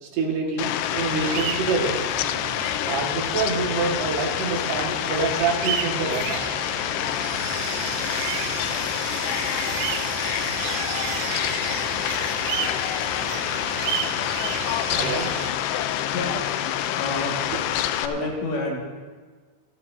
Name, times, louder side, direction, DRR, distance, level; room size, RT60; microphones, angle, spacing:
voice 1, 0.0-2.0 2.5-2.6 2.9-6.4 14.9-15.3, right 4 dB, 65° right, -1 dB, 3.7 m, -26 dB
Fowl, 0.6-18.1, left 11 dB, 85° left, 2.4 m, -27 dB
sound 1, 0.9-15.5, right 12 dB, 85° right, 2.8 m, -33 dB
voice 2, 16.7-17.4 18.0-18.8, left 2 dB, 70° left, -2 dB, 4.1 m, -29 dB
27.5 x 10.5 x 2.7 m, 1.5 s
omnidirectional pair, 5.5 m